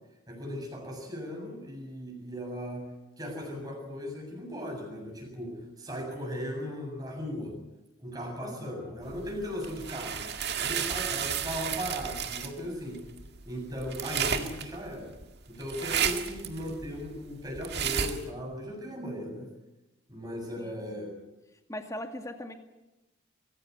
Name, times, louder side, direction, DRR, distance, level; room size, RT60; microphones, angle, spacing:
voice 1, 0.3-7.6 8.0-10.2 10.6-13.0 13.5-15.1 15.5-19.5 20.1-21.2, equal, 20° right, 1 dB, 7.4 m, -37 dB
voice 2, 8.4-9.0 20.6-21.2 21.7-22.5, left 1 dB, 15° left, 5 dB, 2.2 m, -41 dB
sound 1, 9.1-18.3, right 7 dB, 50° right, 1.9 m, -33 dB
23.5 x 16.0 x 9.6 m, 0.99 s
head